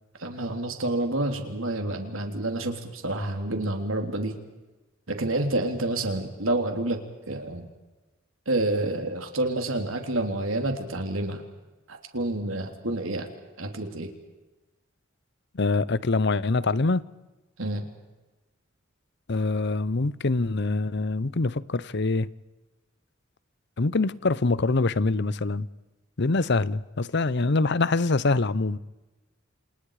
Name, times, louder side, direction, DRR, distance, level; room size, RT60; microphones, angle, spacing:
voice 1, 0.2-4.3 5.1-7.0 7.3-7.7 8.5-11.4 11.9-13.3 13.6-14.1 17.6-17.9, right 2 dB, 90° right, 3.4 m, -28 dB
voice 2, 15.5-17.0 19.3-22.3 23.8-25.7 26.2-28.8, left 3 dB, 60° left, 0.8 m, -24 dB
28.5 x 28.0 x 5.0 m
head